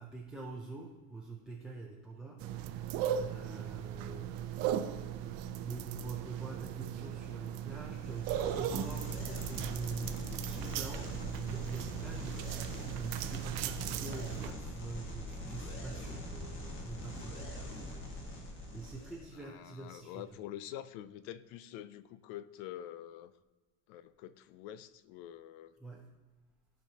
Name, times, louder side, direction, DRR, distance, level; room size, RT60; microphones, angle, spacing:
voice 1, 0.0-4.8 5.2-20.5 25.8-26.1, right 3 dB, ahead, -1 dB, 0.5 m, -46 dB
sound 1, 2.4-14.5, right 10 dB, 70° right, 0.7 m, -38 dB
sound 2, 7.9-19.3, left 1 dB, 35° left, 1.7 m, -43 dB
voice 2, 19.4-23.3 23.9-25.7, left 12 dB, 90° left, 15 dB, 0.6 m, -46 dB
15.0 x 5.2 x 2.8 m, 1.3 s
cardioid pair, 165°, 36 cm